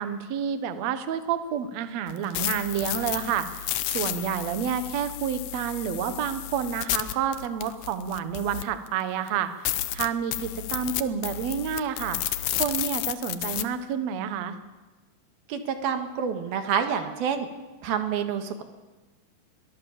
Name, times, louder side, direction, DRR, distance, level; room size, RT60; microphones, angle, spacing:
voice 1, 0.0-12.2 12.6-14.6, right 8 dB, 60° right, 10 dB, 2.0 m, -29 dB
sound 1, 2.1-8.9 9.3-9.4 9.7-13.6, left 13 dB, 75° left, 2.2 m, -31 dB
voice 2, 15.5-17.5 17.8-18.6, right 7 dB, 90° right, 6 dB, 3.5 m, -28 dB
22.5 x 17.5 x 7.2 m, 1.2 s
omnidirectional pair, 4.2 m